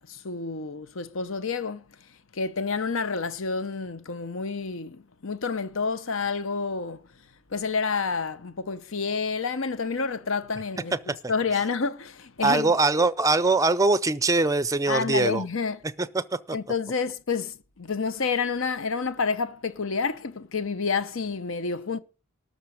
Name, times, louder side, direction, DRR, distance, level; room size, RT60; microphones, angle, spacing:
voice 1, 0.0-7.0 7.5-11.0 11.3-12.7 14.9-15.8 16.5-22.0, left 4 dB, 65° left, 0.8 m, -29 dB
voice 2, 12.4-15.5 16.1-16.2, right 3 dB, 15° right, 0.5 m, -22 dB
13.0 x 5.2 x 7.7 m
head